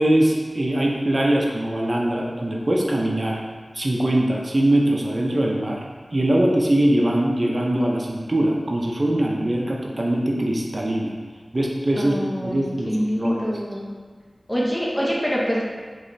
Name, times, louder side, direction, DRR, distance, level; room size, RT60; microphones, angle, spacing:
voice 1, 0.0-3.4 3.7-5.8 6.1-11.1 11.5-13.4, right 1 dB, 50° right, -2 dB, 0.5 m, -22 dB
voice 2, 12.0-13.8 14.5-15.6, equal, 15° left, -5 dB, 0.8 m, -25 dB
4.8 x 3.0 x 2.7 m, 1.5 s
wide cardioid pair, 60°, 0 cm